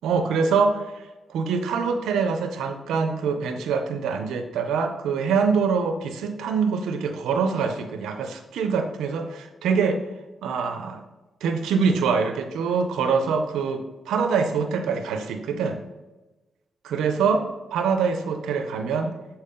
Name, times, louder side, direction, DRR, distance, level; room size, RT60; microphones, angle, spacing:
voice 1, 0.0-1.0 1.3-10.0 10.4-11.0 11.4-15.8 16.8-19.1, right 5 dB, 90° right, 6 dB, 0.6 m, -24 dB
6.6 x 4.5 x 3.6 m, 1.1 s
cardioid pair, 60°, 0 cm